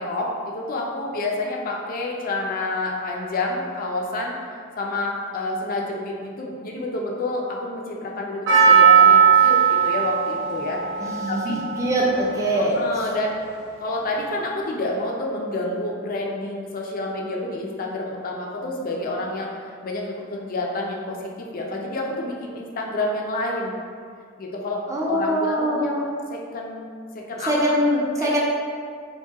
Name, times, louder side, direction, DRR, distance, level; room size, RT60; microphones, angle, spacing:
voice 1, 0.0-4.3 4.8-10.8 11.3-11.6 12.5-13.4 13.8-19.5 19.8-23.7 24.4-26.8 27.1-27.5 28.2-28.3, left 2 dB, 45° left, -1 dB, 0.4 m, -29 dB
Percussion, 8.5-13.4, right 7 dB, 60° right, 1.0 m, -18 dB
voice 2, 11.0-12.8 24.9-26.0 27.5-28.4, equal, 15° right, -5 dB, 0.5 m, -23 dB
4.5 x 2.2 x 2.8 m, 2.1 s
head